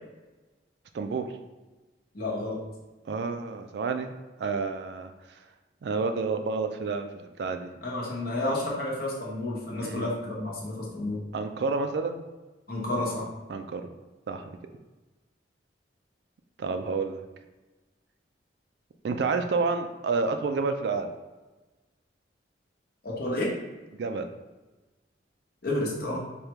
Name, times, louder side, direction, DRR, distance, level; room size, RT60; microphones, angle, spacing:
voice 1, 0.9-1.3 3.1-4.1 4.4-5.1 5.8-7.7 9.8-10.1 11.3-12.3 13.5-13.8 14.3-14.5 16.6-17.2 19.0-21.1 23.9-24.3, right 4 dB, 65° right, 7 dB, 0.3 m, -29 dB
voice 2, 2.1-2.6 7.8-11.2 12.7-13.2 23.0-23.5 25.6-26.2, left 1 dB, 55° left, -4 dB, 0.9 m, -30 dB
4.9 x 2.3 x 2.9 m, 1.2 s
head